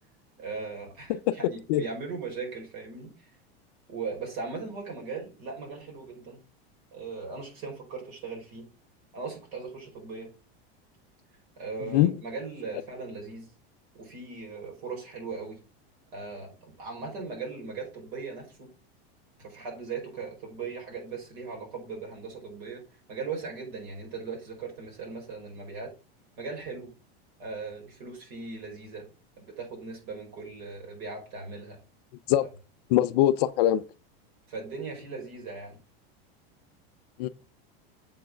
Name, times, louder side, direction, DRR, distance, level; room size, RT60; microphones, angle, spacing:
voice 1, 0.4-3.3 3.9-6.4 6.9-8.7 9.1-10.3 11.6-13.5 14.0-15.6 16.1-18.7 19.4-22.8 23.1-25.9 26.4-26.9 27.4-29.1 29.4-31.8 32.4-32.5 34.5-35.8, right 4 dB, 55° right, 5.1 m, -38 dB
voice 2, 32.9-33.8 37.2-37.3, left 13 dB, 45° left, 0.4 m, -22 dB
7.5 x 4.6 x 6.1 m
supercardioid pair, 170°, 30 cm